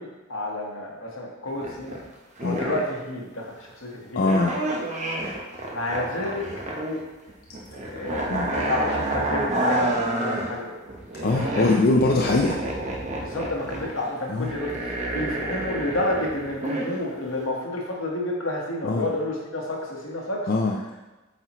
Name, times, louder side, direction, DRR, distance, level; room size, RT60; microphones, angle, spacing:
voice 1, 0.0-2.0 2.4-4.4 5.7-6.4 7.7-8.2 8.5-10.9 11.3-11.7 13.2-14.7 15.1-20.4, left 1 dB, 70° left, -2 dB, 1.3 m, -30 dB
sound 1, 1.5-2.1 2.4-3.0 4.2-7.0 7.3-10.5 10.9-16.9 17.3-17.5, right 1 dB, 35° right, 0.9 m, -29 dB
voice 2, 4.1-4.6 8.3-8.5 11.2-12.6 14.3-14.5 18.8-19.1 20.5-20.8, left 3 dB, 50° left, 0 dB, 0.5 m, -22 dB
8.0 x 4.3 x 3.0 m, 1.1 s
head